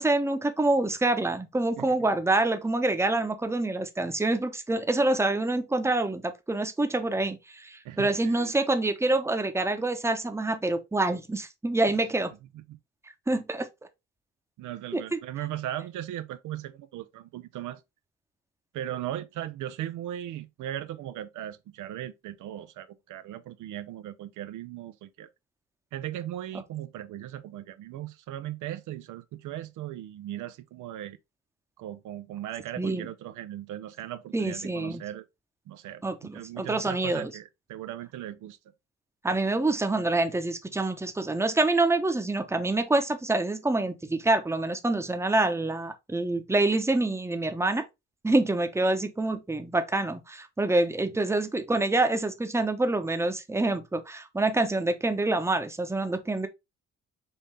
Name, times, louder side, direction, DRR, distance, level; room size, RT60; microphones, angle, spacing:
voice 1, 0.0-12.3 13.3-13.7 14.9-15.2 32.8-33.1 34.3-35.0 36.0-37.3 39.2-47.8 48.2-56.5, right 2 dB, 10° right, 0.8 m, -26 dB
voice 2, 7.8-8.6 12.5-12.8 14.6-17.8 18.7-25.3 25.9-31.2 31.8-35.3 35.7-36.0 36.3-38.6, right 12 dB, 80° right, 0.6 m, -38 dB
5.5 x 2.8 x 3.3 m
cardioid pair, 90°, 30 cm